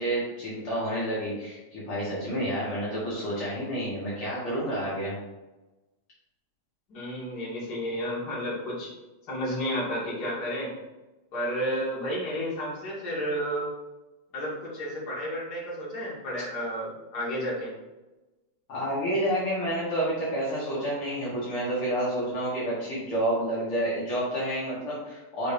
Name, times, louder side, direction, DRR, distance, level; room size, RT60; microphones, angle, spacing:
voice 1, 0.0-5.1 18.7-25.5, right 1 dB, 80° left, -9 dB, 1.2 m, -29 dB
voice 2, 6.9-8.9 9.3-10.7 11.3-13.7 14.3-17.7, equal, 45° left, -7 dB, 1.3 m, -31 dB
8.0 x 5.1 x 2.8 m, 1.1 s
omnidirectional pair, 5.7 m